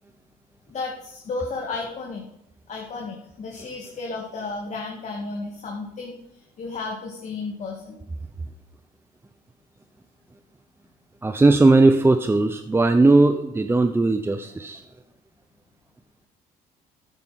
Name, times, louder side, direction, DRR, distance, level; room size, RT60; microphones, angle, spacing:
voice 1, 0.7-2.3 2.7-6.2 6.6-8.0, left 3 dB, 45° left, -1 dB, 2.1 m, -33 dB
voice 2, 11.2-14.8, right 2 dB, 15° right, 8 dB, 0.7 m, -18 dB
12.5 x 9.4 x 5.9 m, 0.82 s
cardioid pair, 110°, 17 cm